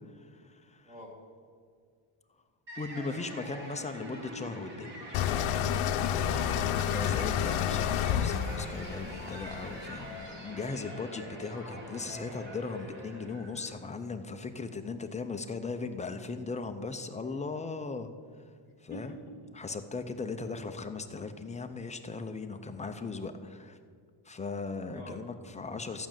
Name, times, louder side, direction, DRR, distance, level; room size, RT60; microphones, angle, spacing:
voice 1, 0.2-0.9 2.8-4.9 6.9-18.1 18.8-19.1 19.6-23.8 24.3-26.1, left 4 dB, 15° left, 6 dB, 0.3 m, -38 dB
voice 2, 0.9-1.2 6.1-6.9 18.6-19.5 24.9-25.2, left 1 dB, 15° right, -1 dB, 2.4 m, -47 dB
sound 1, 2.7-13.8, equal, 55° right, 3.2 m, -44 dB
sound 2, 5.1-10.1, left 10 dB, 75° left, 0.7 m, -30 dB
14.0 x 6.1 x 8.8 m, 2.1 s
cardioid pair, 175°, 50 cm